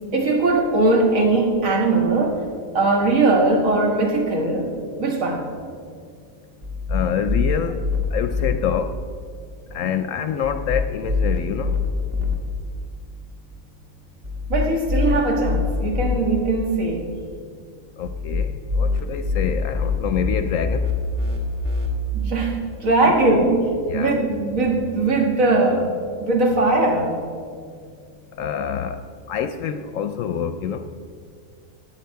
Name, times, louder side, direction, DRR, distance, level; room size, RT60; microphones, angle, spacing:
voice 1, 0.1-2.4 2.7-5.4 14.5-17.1 22.1-23.7 23.9-25.9 26.2-27.1, right 2 dB, 70° right, 1 dB, 2.0 m, -20 dB
sound 1, 6.6-8.5 10.4-12.3 14.2-16.2 18.0-21.9, left 4 dB, 45° right, 1.5 m, -24 dB
voice 2, 6.9-7.8 8.1-8.9 9.7-11.8 18.0-18.5 18.8-20.9 23.9-24.2 28.4-29.0 29.3-30.8, left 8 dB, 70° left, 9 dB, 0.9 m, -26 dB
18.0 x 7.4 x 4.6 m, 2.2 s
omnidirectional pair, 1.5 m